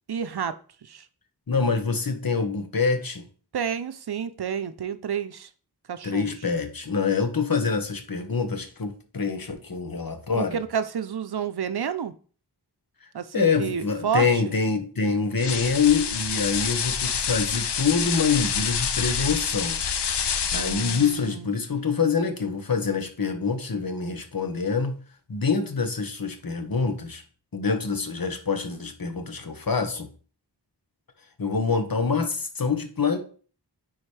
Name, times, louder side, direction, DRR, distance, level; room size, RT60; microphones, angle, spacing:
voice 1, 0.1-0.5 0.8-1.1 3.5-5.5 5.9-6.4 10.3-12.1 13.1-14.3 20.5-21.5, right 7 dB, 70° right, 0.6 m, -30 dB
voice 2, 1.5-3.3 6.0-10.6 13.3-19.8 20.5-25.0 25.3-27.2 27.5-30.1 31.4-33.2, left 5 dB, 55° left, 1.1 m, -25 dB
sound 1, 15.4-21.3, left 7 dB, 85° left, 0.6 m, -27 dB
9.6 x 3.9 x 3.3 m
wide cardioid pair, 45°, 41 cm